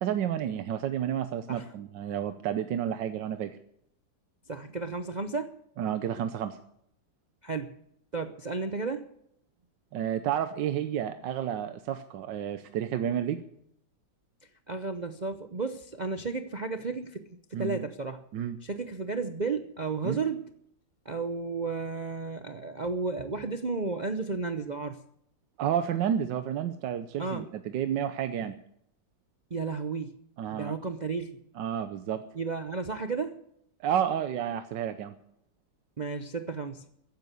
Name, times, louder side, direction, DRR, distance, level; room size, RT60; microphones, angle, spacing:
voice 1, 0.0-3.6 5.8-6.6 9.9-13.4 17.5-17.8 18.3-18.6 20.0-20.2 25.6-28.5 30.4-30.7 31.6-32.2 33.8-35.1, right 9 dB, 70° right, 9 dB, 1.4 m, -30 dB
voice 2, 4.5-5.6 7.4-7.8 8.1-9.1 14.7-18.2 18.6-20.4 21.0-25.0 27.2-27.5 28.4-28.5 29.5-30.2 30.5-31.4 32.3-33.4 36.0-36.8, right 4 dB, 55° right, 7 dB, 0.4 m, -33 dB
15.0 x 10.5 x 8.2 m, 0.73 s
omnidirectional pair, 2.1 m